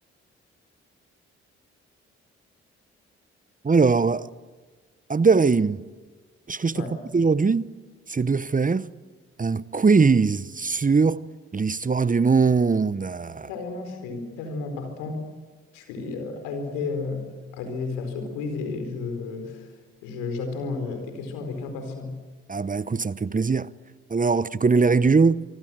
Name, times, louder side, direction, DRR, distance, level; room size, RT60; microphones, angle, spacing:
voice 1, 3.6-4.3 5.1-5.9 6.5-6.8 7.1-7.7 8.1-8.9 9.4-11.2 11.5-13.5 22.5-23.7 24.1-25.4, right 4 dB, 25° right, 1.0 m, -21 dB
voice 2, 13.5-15.2 15.7-17.3 17.5-19.7 20.0-22.2, left 4 dB, 85° left, 4.5 m, -32 dB
26.0 x 24.5 x 7.7 m
hypercardioid pair, 40°, 30 cm